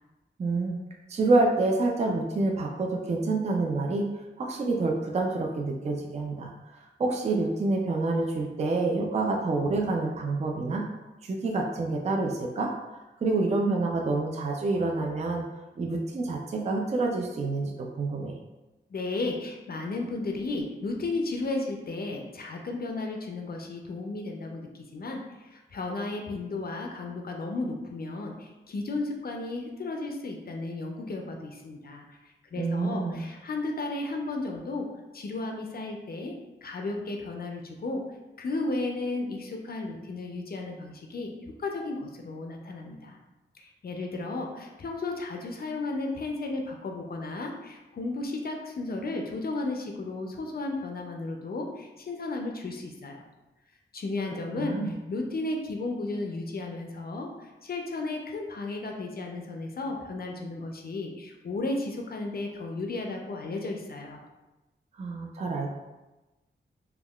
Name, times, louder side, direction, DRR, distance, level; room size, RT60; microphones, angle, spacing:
voice 1, 0.4-0.8 1.1-4.1 4.4-10.8 11.2-12.7 13.2-15.4 15.8-18.4 32.6-33.2 54.6-55.0 65.0-65.7, right 3 dB, 35° right, 1 dB, 0.3 m, -27 dB
voice 2, 18.9-34.9 35.1-36.4 36.6-38.0 38.4-43.2 43.5-53.2 53.9-64.2, left 2 dB, 50° left, 2 dB, 0.4 m, -34 dB
3.5 x 2.3 x 2.3 m, 1.1 s
wide cardioid pair, 95°, 20 cm